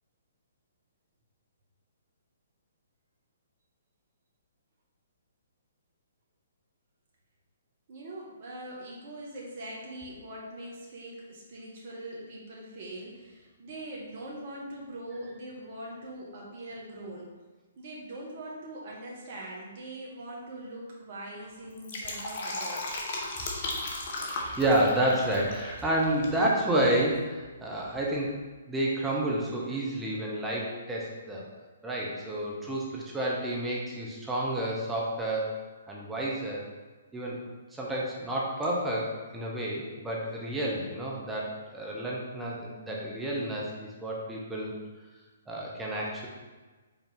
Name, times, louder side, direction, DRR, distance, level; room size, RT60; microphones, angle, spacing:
voice 1, 7.9-17.3 17.8-23.0, right 1 dB, 45° right, -3 dB, 1.4 m, -42 dB
Fill (with liquid), 21.6-26.4 26.7-26.8, left 2 dB, 50° left, 1.1 m, -36 dB
voice 2, 24.2-28.4 28.7-31.4 31.8-35.6 35.9-36.6 37.1-37.4 37.7-39.1 39.3-44.8 45.5-46.3, right 1 dB, 10° right, -4 dB, 1.1 m, -30 dB
5.6 x 4.2 x 4.0 m, 1.3 s
figure-of-eight pair, 125°, 0 cm